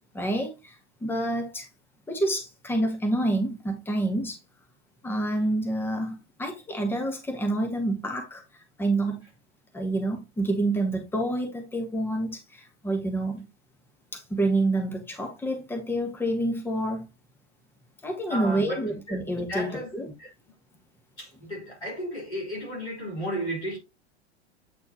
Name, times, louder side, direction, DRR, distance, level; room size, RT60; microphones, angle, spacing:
voice 1, 0.1-1.7 2.1-4.4 5.0-8.4 8.8-9.2 9.7-13.4 14.1-17.0 18.0-20.1, right 1 dB, 5° left, 1.5 m, -28 dB
voice 2, 18.3-19.2 19.5-19.9 20.2-20.3 21.2-23.8, equal, 75° left, 4.5 m, -34 dB
8.6 x 4.3 x 2.9 m
figure-of-eight pair, 90°, 34 cm